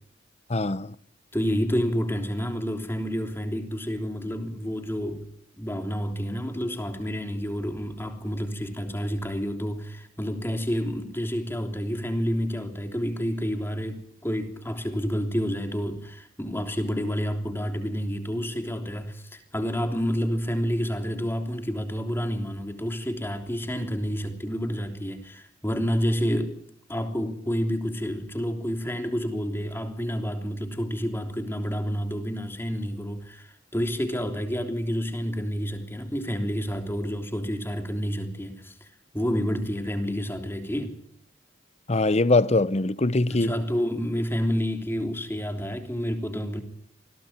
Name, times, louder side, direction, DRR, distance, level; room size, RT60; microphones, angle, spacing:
voice 1, 0.5-0.9 41.9-43.6, left 2 dB, 35° left, 0.8 m, -22 dB
voice 2, 1.3-5.2 5.6-26.6 26.9-38.9 39.1-41.0 43.3-46.6, equal, 10° left, 3.3 m, -29 dB
27.5 x 21.0 x 4.5 m
head